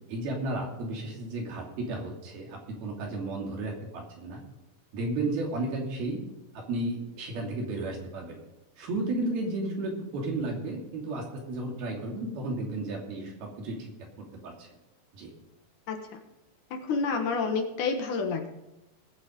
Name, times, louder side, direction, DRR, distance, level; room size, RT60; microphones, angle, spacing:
voice 1, 0.1-4.4 4.9-6.2 6.7-8.4 8.8-13.9 14.4-14.7 15.1-15.3, right 2 dB, 85° right, 0 dB, 4.8 m, -33 dB
voice 2, 15.9-16.2 16.7-18.5, left 4 dB, 65° left, 4 dB, 2.6 m, -29 dB
19.5 x 7.6 x 5.2 m, 0.96 s
omnidirectional pair, 4.2 m